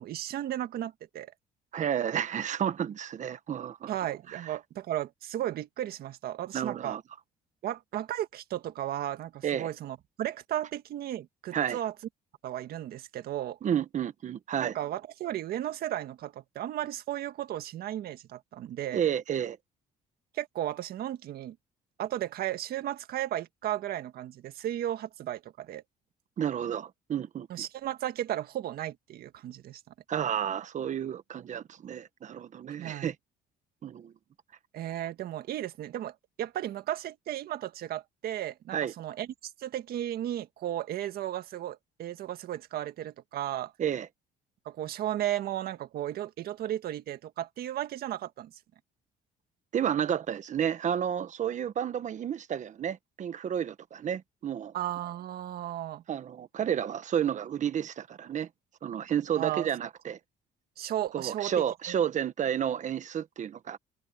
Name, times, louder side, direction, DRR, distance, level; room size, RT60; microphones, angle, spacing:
voice 1, 0.0-1.3 3.9-7.0 7.6-11.9 12.4-13.6 14.6-19.1 20.3-21.5 22.0-25.8 27.5-29.8 32.8-33.1 34.7-39.3 39.6-43.7 44.6-48.5 54.7-56.0 59.4-59.7 60.8-61.5 61.9-62.0, right 12 dB, 65° right, 1.7 m, -35 dB
voice 2, 1.7-3.9 4.3-4.6 6.5-7.0 9.4-9.7 11.5-11.8 13.6-14.7 18.9-19.6 26.4-27.5 30.1-33.1 33.8-34.1 38.7-38.9 43.8-44.1 49.7-54.7 56.1-58.5 58.8-60.2 61.1-63.8, right 9 dB, 45° right, 1.3 m, -31 dB
cardioid pair, 110°, 17 cm